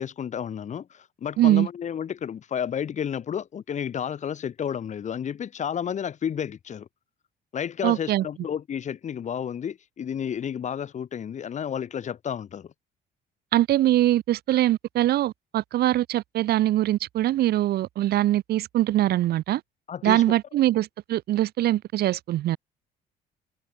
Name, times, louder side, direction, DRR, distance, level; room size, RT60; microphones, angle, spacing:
voice 1, 0.0-6.9 7.5-12.7 19.9-20.2, left 8 dB, 45° left, 2.7 m, -31 dB
voice 2, 1.4-1.7 7.8-8.2 13.5-19.6 20.0-22.6, right 14 dB, 70° right, 2.6 m, -22 dB
cardioid pair, 110°, 17 cm